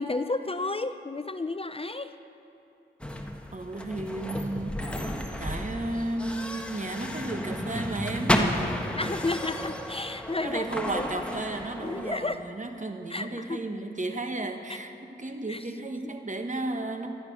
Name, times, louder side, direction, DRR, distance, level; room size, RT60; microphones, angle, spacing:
voice 1, 0.0-2.1 8.9-10.7 10.9-11.1 11.8-12.4 13.1-13.6 15.5-15.6, left 3 dB, 30° left, 10 dB, 0.6 m, -32 dB
sound 1, 3.0-12.2, equal, 5° left, 1.4 m, -32 dB
voice 2, 3.5-5.0 5.4-8.4 10.4-17.1, right 2 dB, 40° right, 5 dB, 1.4 m, -33 dB
14.5 x 10.5 x 6.2 m, 2.9 s
cardioid pair, 40°, 20 cm